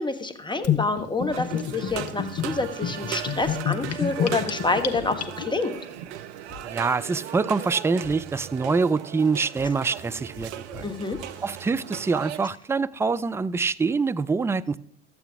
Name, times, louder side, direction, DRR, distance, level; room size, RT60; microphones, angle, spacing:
voice 1, 0.0-5.8 10.8-11.2, left 3 dB, 15° left, 1.4 m, -27 dB
Gurgling / Bathtub (filling or washing), 0.6-5.7, left 9 dB, 45° left, 1.3 m, -29 dB
sound 1, 1.3-12.4, right 11 dB, 75° right, 0.7 m, -38 dB
sound 2, 1.9-7.0 7.3-12.5 12.9-13.9, equal, 55° right, 3.6 m, -48 dB
voice 2, 6.6-10.9 11.4-14.8, right 4 dB, 10° right, 0.3 m, -25 dB
13.0 x 8.4 x 3.5 m
hypercardioid pair, 60°, 35 cm